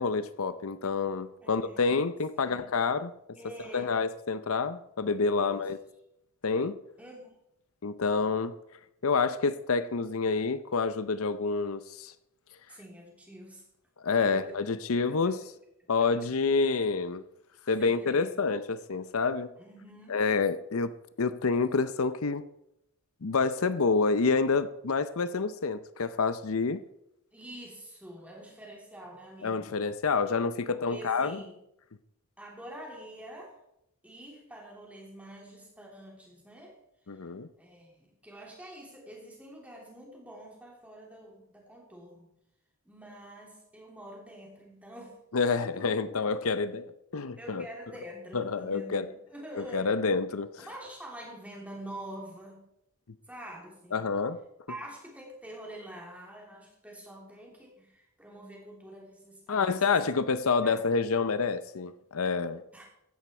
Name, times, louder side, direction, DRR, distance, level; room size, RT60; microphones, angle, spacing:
voice 1, 0.0-3.1 3.7-5.8 6.4-6.8 7.8-8.5 9.0-12.1 14.0-15.4 15.9-17.2 17.7-19.5 20.1-20.9 21.2-22.4 23.2-26.8 29.4-31.4 37.1-37.5 45.3-47.7 48.3-49.1 49.6-50.7 53.9-54.4 59.5-62.6, left 4 dB, 75° left, 0.6 m, -28 dB
voice 2, 1.4-1.9 2.4-2.7 3.3-3.9 5.4-5.7 7.0-7.3 12.7-13.6 14.2-14.6 14.9-15.4 16.0-16.3 17.8-18.3 19.6-20.2 27.3-29.7 30.7-31.6 32.4-33.6 34.0-36.8 37.6-42.3 42.8-45.2 45.6-46.6 47.4-50.0 50.6-52.7 53.3-54.0 54.7-60.0 60.6-60.8 62.7-62.9, right 1 dB, 5° right, 3.3 m, -46 dB
15.5 x 11.0 x 4.4 m
head